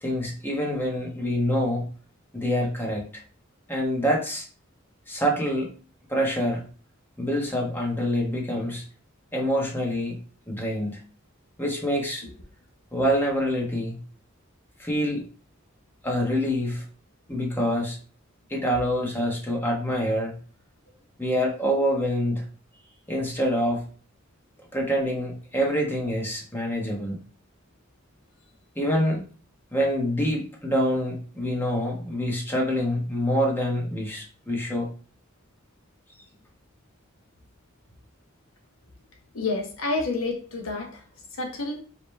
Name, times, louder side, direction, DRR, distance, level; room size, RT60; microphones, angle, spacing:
voice 1, 0.0-1.9 2.3-3.1 3.7-4.5 5.1-5.7 6.1-6.6 7.2-8.8 9.3-10.2 10.5-11.0 11.6-12.2 12.9-14.0 14.8-15.2 16.0-16.8 17.3-18.0 18.5-20.3 21.2-22.4 23.1-23.8 24.7-27.2 28.7-29.2 29.7-34.9, equal, 10° left, -2 dB, 1.2 m, -26 dB
voice 2, 39.3-41.0 41.3-41.8, left 3 dB, 80° left, 1 dB, 1.2 m, -29 dB
5.0 x 2.9 x 3.3 m, 0.39 s
head